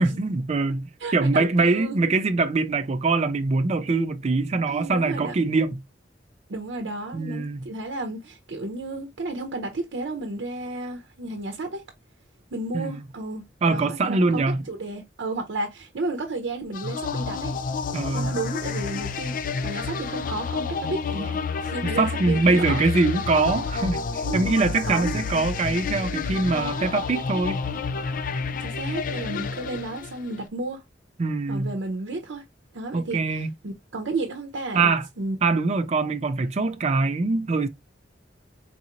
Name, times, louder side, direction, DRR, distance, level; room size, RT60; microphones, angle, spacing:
voice 1, 0.0-0.8 1.1-5.8 7.1-7.6 12.7-13.0 13.6-14.6 17.9-18.3 22.0-27.6 31.2-31.7 32.9-33.5 34.7-35.1 35.4-37.7, right 3 dB, 35° right, 0.4 m, -23 dB
voice 2, 1.0-2.0 4.7-5.3 6.5-11.8 12.5-17.6 18.1-22.9 24.2-24.5 24.8-25.3 26.1-26.9 28.6-30.8 31.5-32.4 32.7-35.4, right 2 dB, 80° right, 0.7 m, -33 dB
sound 1, 16.7-30.4, left 5 dB, 50° left, 0.4 m, -30 dB
3.9 x 2.9 x 2.5 m
head